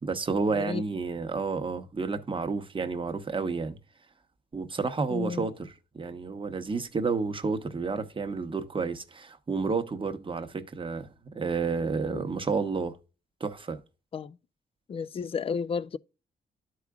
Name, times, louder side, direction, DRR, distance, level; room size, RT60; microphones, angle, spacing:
voice 1, 0.0-3.8 4.5-13.0 13.4-13.8, right 4 dB, 30° right, 1.0 m, -30 dB
voice 2, 5.1-5.5 12.1-12.2 14.1-14.4 14.9-16.0, left 5 dB, 30° left, 0.4 m, -32 dB
12.5 x 4.8 x 2.3 m
cardioid pair, 95°, 18 cm